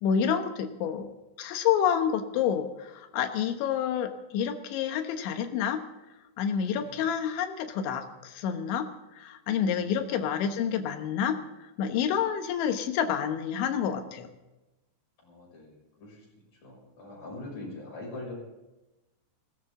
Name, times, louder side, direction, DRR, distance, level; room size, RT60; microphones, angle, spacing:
voice 1, 0.0-1.1 1.4-5.8 6.4-8.9 9.2-11.4 11.8-14.3, left 8 dB, 80° left, 6 dB, 3.5 m, -28 dB
voice 2, 6.6-7.0 9.7-9.9 15.2-16.3 16.6-18.3, left 2 dB, 45° left, -2 dB, 7.6 m, -43 dB
20.5 x 17.5 x 3.8 m, 1.0 s
omnidirectional pair, 5.4 m